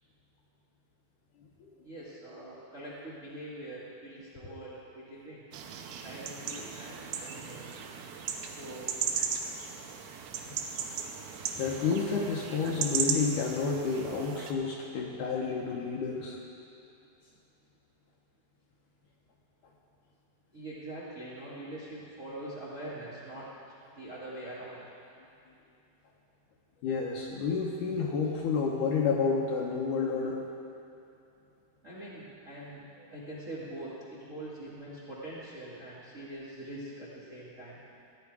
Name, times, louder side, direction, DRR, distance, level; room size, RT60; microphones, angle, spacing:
voice 1, 1.8-5.4 5.9-7.9 8.4-9.0 20.5-23.5 23.9-24.8 31.8-37.8, right 1 dB, 35° right, -8 dB, 1.4 m, -43 dB
sound 1, 5.5-14.5, right 7 dB, 80° right, 2.6 m, -36 dB
voice 2, 11.5-16.4 26.8-30.4, left 5 dB, 70° left, -1 dB, 2.1 m, -30 dB
14.5 x 10.0 x 4.8 m, 2.6 s
omnidirectional pair, 4.3 m